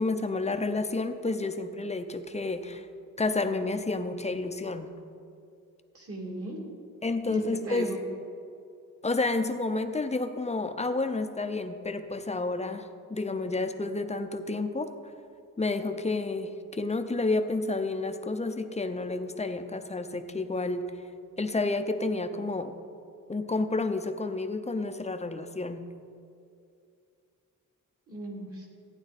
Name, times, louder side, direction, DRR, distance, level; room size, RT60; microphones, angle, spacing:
voice 1, 0.0-2.9 3.2-4.9 7.0-7.9 9.0-14.9 15.6-20.9 21.4-22.7 23.3-25.9, left 3 dB, 20° left, 8 dB, 0.6 m, -30 dB
voice 2, 5.9-6.6 7.3-8.0 28.1-28.7, right 1 dB, 45° right, -1 dB, 2.3 m, -36 dB
14.5 x 9.7 x 4.1 m, 2.5 s
wide cardioid pair, 150°, 32 cm